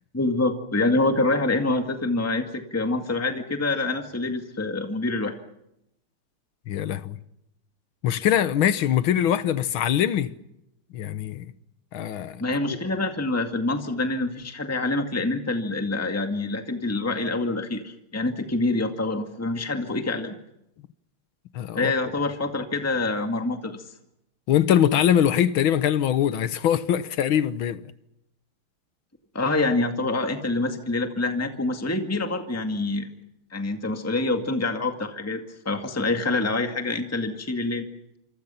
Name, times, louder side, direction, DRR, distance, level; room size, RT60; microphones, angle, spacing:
voice 1, 0.1-5.3 12.4-20.3 21.8-23.9 29.3-33.1 33.5-37.9, left 2 dB, 5° left, 1.9 m, -26 dB
voice 2, 6.7-7.2 8.0-10.3 10.9-11.5 11.9-12.4 12.7-12.8 21.5-21.9 24.5-27.8, left 10 dB, 70° left, 1.9 m, -22 dB
27.0 x 26.5 x 5.7 m
omnidirectional pair, 2.4 m